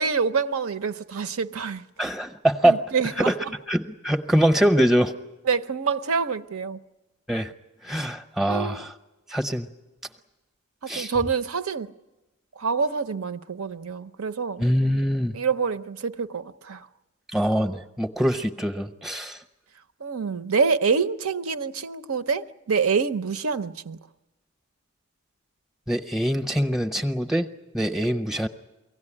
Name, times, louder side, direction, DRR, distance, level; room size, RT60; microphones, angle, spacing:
voice 1, 0.0-1.8 2.6-3.3 5.4-6.8 8.5-8.9 10.8-11.9 12.6-14.6 15.3-16.9 20.0-24.0, right 5 dB, 80° right, 0.7 m, -26 dB
voice 2, 2.0-2.8 3.3-3.4 3.7-5.1 7.3-7.5 7.8-8.9 9.3-9.7 10.9-11.1 14.6-15.3 17.3-19.4 25.9-27.5 27.7-28.5, equal, ahead, 0.7 m, -23 dB
24.0 x 17.0 x 9.9 m
head